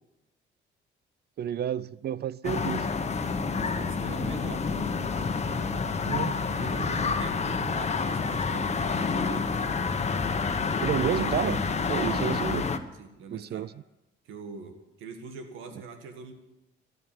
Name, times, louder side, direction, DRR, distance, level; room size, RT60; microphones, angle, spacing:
voice 1, 1.4-3.0 6.0-6.4 10.8-12.6 13.3-13.7, right 10 dB, 55° right, 20 dB, 0.4 m, -30 dB
sound 1, 2.4-12.8, left 4 dB, 35° left, 1.2 m, -28 dB
voice 2, 3.6-4.7 6.6-9.5 11.9-12.1 13.0-13.7 14.3-16.3, right 5 dB, 90° right, 7 dB, 1.8 m, -43 dB
13.0 x 10.5 x 9.2 m, 0.96 s
cardioid pair, 90°, 20 cm